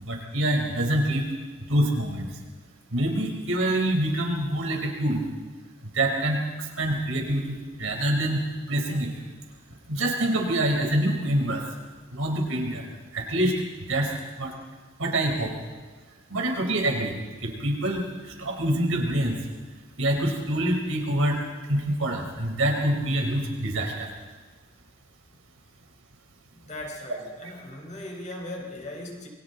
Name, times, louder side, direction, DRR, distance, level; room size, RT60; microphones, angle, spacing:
voice 1, 0.1-1.3 1.7-2.3 2.9-5.2 5.9-6.4 6.8-8.4 8.7-9.1 9.9-11.6 12.1-12.8 13.1-13.5 13.9-14.1 14.4-14.5 15.0-15.5 16.3-17.1 17.4-18.0 18.4-19.4 20.0-21.4 21.7-24.1, right 1 dB, 80° right, 2 dB, 4.3 m, -25 dB
voice 2, 26.5-29.3, left 1 dB, 35° left, 0 dB, 4.6 m, -38 dB
28.0 x 23.0 x 4.0 m, 1.4 s
head